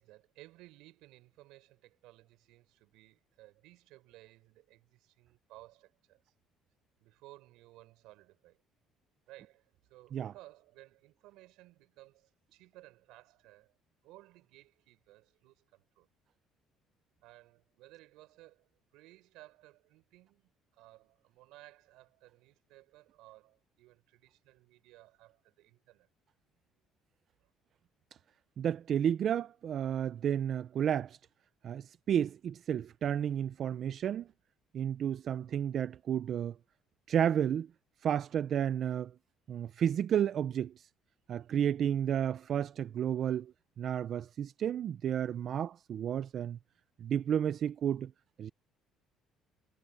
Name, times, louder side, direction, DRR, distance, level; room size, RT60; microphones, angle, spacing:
voice 1, 0.0-6.3 7.0-8.6 9.3-13.8 14.0-16.1 17.2-26.1 27.4-27.5 43.2-43.4, right 18 dB, 85° right, 5.4 m, -58 dB
voice 2, 28.6-31.2 31.6-34.3 34.7-36.6 37.1-37.7 38.0-39.1 39.5-40.9 41.3-46.6 47.0-48.1 48.4-48.5, right 9 dB, 40° right, 0.4 m, -32 dB
cardioid pair, 165°, 0 cm